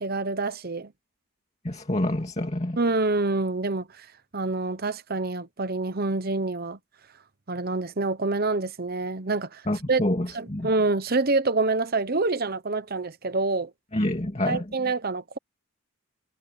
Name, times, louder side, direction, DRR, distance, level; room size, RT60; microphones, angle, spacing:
voice 1, 0.0-0.9 2.8-4.1 4.3-6.8 7.5-9.6 9.9-10.0 10.3-13.7 14.5-15.4, right 3 dB, 45° right, 1.0 m, -26 dB
voice 2, 1.6-2.8 9.7-10.7 13.9-14.7, left 1 dB, 30° left, 2.3 m, -27 dB
head